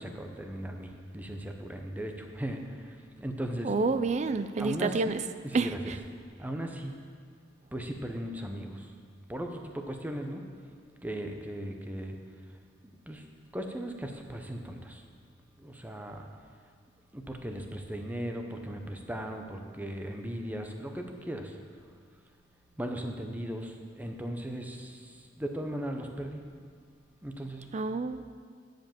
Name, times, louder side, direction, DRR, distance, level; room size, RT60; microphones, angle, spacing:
voice 1, 0.0-3.7 4.6-5.1 5.4-6.0 6.4-6.9 7.7-8.9 9.3-10.4 11.0-12.2 13.1-13.2 13.5-15.0 15.6-16.3 17.1-21.6 22.8-26.4 27.2-27.6, right 1 dB, 10° right, 3 dB, 0.7 m, -37 dB
voice 2, 3.6-5.2 5.5-5.7 27.7-28.2, right 3 dB, 35° right, 11 dB, 0.3 m, -28 dB
10.0 x 5.2 x 7.2 m, 2.1 s
head